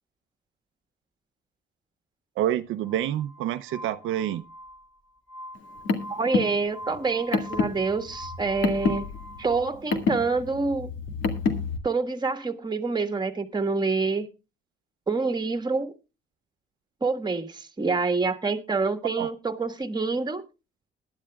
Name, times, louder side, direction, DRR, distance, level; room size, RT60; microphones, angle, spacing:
voice 1, 2.4-4.4 19.2-19.3, right 12 dB, 85° right, 0.6 m, -27 dB
Glass, 2.8-9.6, equal, 5° right, 2.9 m, -43 dB
Car, 5.5-11.8, left 4 dB, 75° left, 2.0 m, -29 dB
voice 2, 6.1-9.1 9.4-10.9 11.8-14.3 15.1-15.9 17.0-20.4, right 4 dB, 20° right, 1.5 m, -27 dB
20.5 x 11.5 x 2.3 m
cardioid pair, 90°, 20 cm